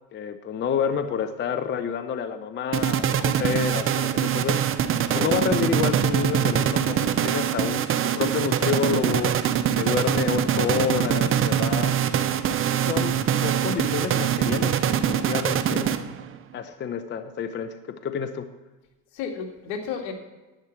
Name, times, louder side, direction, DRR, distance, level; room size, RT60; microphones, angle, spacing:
voice 1, 0.1-4.6 5.1-9.3 9.8-11.9 12.7-15.9 16.5-18.5, left 7 dB, 30° left, 9 dB, 0.7 m, -29 dB
sound 1, 2.7-16.4, right 9 dB, 35° right, 0.7 m, -23 dB
voice 2, 13.1-13.6 19.1-20.1, left 6 dB, 80° left, 2 dB, 2.2 m, -33 dB
10.5 x 10.0 x 4.5 m, 1.2 s
supercardioid pair, 120°, 40 cm